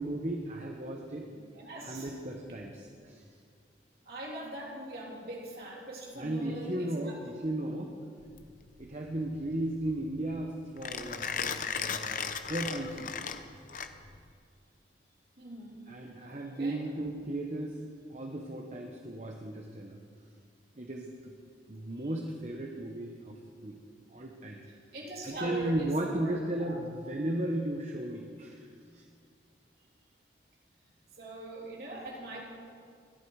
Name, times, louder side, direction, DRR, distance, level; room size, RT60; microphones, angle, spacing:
voice 1, 0.0-1.3 1.8-3.2 6.2-8.0 8.8-13.1 15.9-17.8 18.1-20.0 20.8-21.3 21.7-23.8 24.1-24.6 25.2-28.7 28.9-29.0, right 1 dB, 40° right, 1 dB, 1.1 m, -35 dB
voice 2, 1.3-2.1 4.0-7.2 15.4-15.9 16.4-16.8 22.0-22.1 24.9-26.8 31.2-32.4, right 1 dB, 55° right, -3 dB, 3.4 m, -42 dB
Mechanisms, 8.2-14.3, left 6 dB, 45° left, 0.7 m, -37 dB
21.5 x 12.0 x 4.8 m, 2.2 s
head